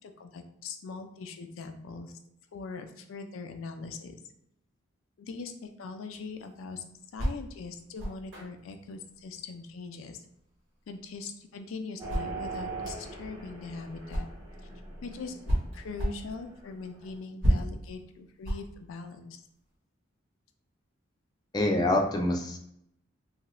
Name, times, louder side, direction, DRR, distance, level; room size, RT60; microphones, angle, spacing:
voice 1, 0.0-2.1 2.5-4.1 5.2-6.8 7.1-10.2 10.9-14.3 15.0-19.4, left 4 dB, 85° left, 6 dB, 0.4 m, -41 dB
sound 1, 6.1-14.6 15.0-19.7, equal, 70° right, 1.1 m, -33 dB
sound 2, 12.0-17.1, right 3 dB, 20° right, 0.8 m, -41 dB
voice 2, 21.5-22.6, left 1 dB, 20° left, 2 dB, 0.3 m, -26 dB
2.7 x 2.4 x 3.1 m, 0.76 s
head